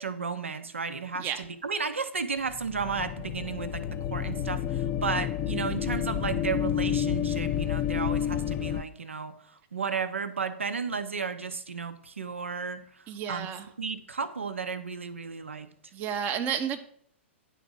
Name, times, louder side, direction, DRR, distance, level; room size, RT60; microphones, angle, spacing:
voice 1, 0.0-9.3 9.7-13.5 13.8-15.7, right 5 dB, 75° right, 10 dB, 0.8 m, -33 dB
sound 1, 2.5-8.8, left 10 dB, 30° left, 0.5 m, -30 dB
voice 2, 13.1-13.7 15.9-16.8, right 8 dB, 25° right, 6 dB, 0.7 m, -31 dB
10.0 x 4.1 x 6.2 m, 0.64 s
figure-of-eight pair, 110°, 7 cm